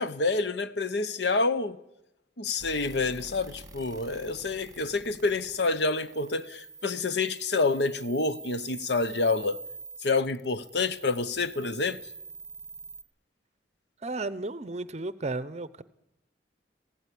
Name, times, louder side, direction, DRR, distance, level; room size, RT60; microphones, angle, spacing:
voice 1, 0.0-1.8 2.4-9.6 10.0-12.0, left 3 dB, 65° left, 0.9 m, -28 dB
sound 1, 2.6-13.0, right 4 dB, 20° right, 1.3 m, -46 dB
voice 2, 14.0-15.8, right 2 dB, 35° right, 0.7 m, -34 dB
17.0 x 16.0 x 9.9 m
head